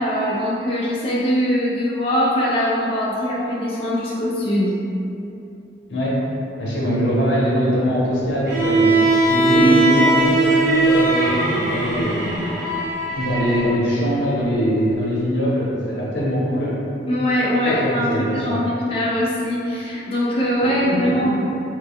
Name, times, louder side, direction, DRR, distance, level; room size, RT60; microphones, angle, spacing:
voice 1, 0.0-4.8 9.6-9.8 17.1-21.4, equal, 30° left, -7 dB, 0.4 m, -21 dB
voice 2, 6.6-8.9 9.3-12.5 13.2-16.7 17.6-18.5 20.9-21.3, equal, 85° left, -6 dB, 0.8 m, -22 dB
Bowed string instrument, 8.4-13.7, right 2 dB, 55° right, 0.8 m, -19 dB
3.1 x 2.2 x 3.4 m, 2.7 s
head